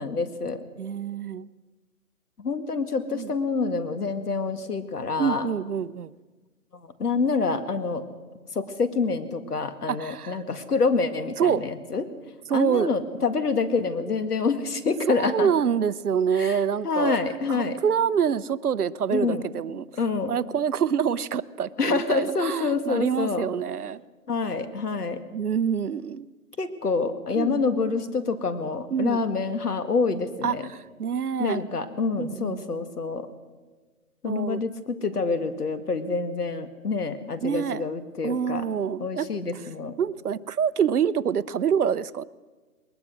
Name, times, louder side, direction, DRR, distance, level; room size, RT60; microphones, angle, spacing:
voice 1, 0.0-0.6 2.4-5.5 7.0-8.1 8.5-12.1 12.5-15.5 16.3-17.8 19.1-19.5 20.0-20.4 21.8-23.5 24.3-25.2 26.6-30.7 31.4-33.3 34.2-38.7 39.0-40.0, left 4 dB, 85° left, 10 dB, 2.1 m, -27 dB
voice 2, 0.8-1.5 3.1-3.3 5.2-6.1 9.9-10.4 11.4-11.6 12.5-12.9 15.1-17.2 17.5-19.9 20.3-24.0 25.3-26.3 27.4-27.6 28.9-29.2 30.4-31.6 32.2-32.8 34.2-34.6 37.4-37.9 38.2-39.6 40.0-42.2, right 7 dB, 75° right, 16 dB, 0.8 m, -26 dB
20.5 x 19.5 x 6.3 m, 1.3 s
hypercardioid pair, 180°, 45 cm